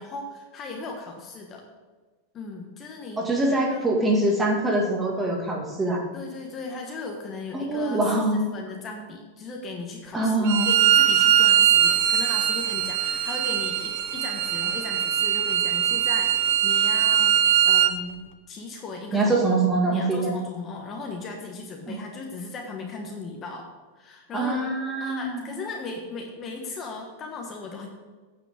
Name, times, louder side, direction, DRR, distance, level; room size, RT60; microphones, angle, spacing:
voice 1, 0.0-1.6 2.3-3.9 6.1-17.4 17.6-19.3 19.7-23.7 23.9-24.7 25.0-27.9, left 3 dB, 25° left, 1 dB, 1.2 m, -37 dB
voice 2, 3.2-6.0 7.5-8.4 10.1-10.7 19.1-20.4 21.9-22.0 24.3-25.5, right 2 dB, 10° right, -1 dB, 2.0 m, -24 dB
Bowed string instrument, 10.5-17.9, right 10 dB, 55° right, 0.7 m, -21 dB
9.3 x 5.0 x 7.7 m, 1.4 s
supercardioid pair, 145°, 0 cm